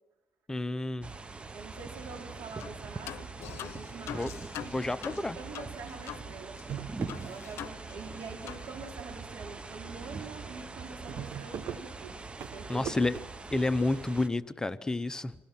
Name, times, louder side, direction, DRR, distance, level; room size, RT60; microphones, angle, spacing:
voice 1, 0.5-1.1 4.1-4.3 4.7-5.4 12.7-13.2 13.5-15.3, left 2 dB, 15° left, 11 dB, 0.8 m, -30 dB
sound 1, 1.0-14.3, right 4 dB, 25° right, 0.8 m, -43 dB
voice 2, 1.5-3.3 3.6-4.3 4.6-6.6 7.2-12.2 12.4-12.9, right 4 dB, 80° right, 3 dB, 3.7 m, -45 dB
sound 2, 2.6-2.8 3.1-6.3 6.5-6.6 7.1-8.2 8.5-8.7, left 11 dB, 85° left, 0.6 m, -43 dB
sound 3, 5.5-5.7 6.1-6.2 6.5-7.8 8.1-8.8 9.3-9.5 9.7-9.8 10.1-10.2 10.5-13.2, right 8 dB, 60° right, 1.0 m, -41 dB
26.5 x 18.0 x 5.9 m, 1.0 s
cardioid pair, 100°, 4 cm